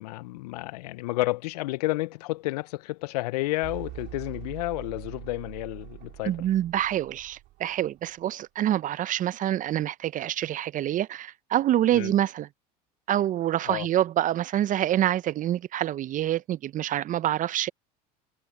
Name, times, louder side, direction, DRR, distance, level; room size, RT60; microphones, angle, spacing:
voice 1, 0.0-6.4 11.9-12.1 13.7-13.9, left 20 dB, 80° left, 0.5 m, -31 dB
sound 1, 3.6-8.2, right 17 dB, 60° right, 3.1 m, -43 dB
voice 2, 6.3-12.5 13.1-17.7, right 12 dB, 40° right, 0.7 m, -26 dB
hypercardioid pair, 85°, 20 cm